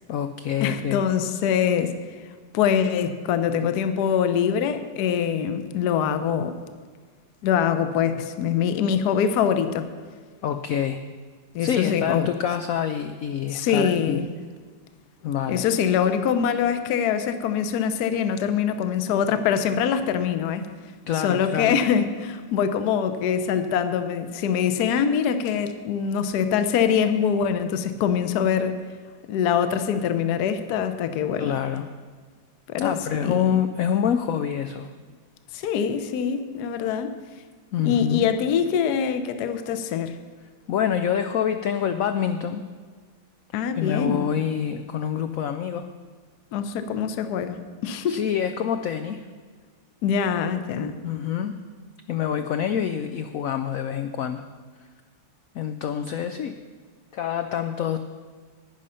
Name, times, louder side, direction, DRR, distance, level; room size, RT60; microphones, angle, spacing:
voice 1, 0.1-1.0 10.4-11.0 11.6-14.2 15.2-15.7 21.1-21.8 31.4-31.8 32.8-34.9 37.7-38.3 40.7-42.6 43.8-45.9 48.1-49.2 51.0-51.6 52.1-54.4 55.5-56.6 57.1-58.0, left 8 dB, 90° left, 8 dB, 0.7 m, -26 dB
voice 2, 0.6-1.9 2.5-6.6 7.4-9.9 11.5-12.3 13.5-14.3 15.5-20.7 21.2-28.8 29.3-31.5 32.7-33.5 35.5-37.1 37.8-40.2 43.5-44.3 46.5-48.2 50.0-51.0, left 8 dB, 65° left, 10 dB, 1.1 m, -24 dB
11.5 x 9.8 x 5.6 m, 1.6 s
omnidirectional pair, 2.1 m